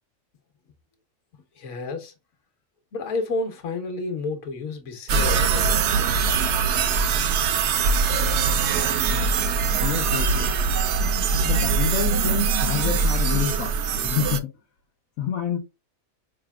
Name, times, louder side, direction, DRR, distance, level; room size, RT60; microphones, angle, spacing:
voice 1, 1.5-2.1 2.9-5.7, left 3 dB, 65° left, 1.3 m, -30 dB
sound 1, 5.1-14.4, right 5 dB, 65° right, 0.8 m, -22 dB
voice 2, 9.8-10.5 11.4-13.8 14.0-14.5 15.2-15.6, left 8 dB, 80° left, 1.3 m, -28 dB
4.9 x 3.3 x 2.2 m
omnidirectional pair, 1.4 m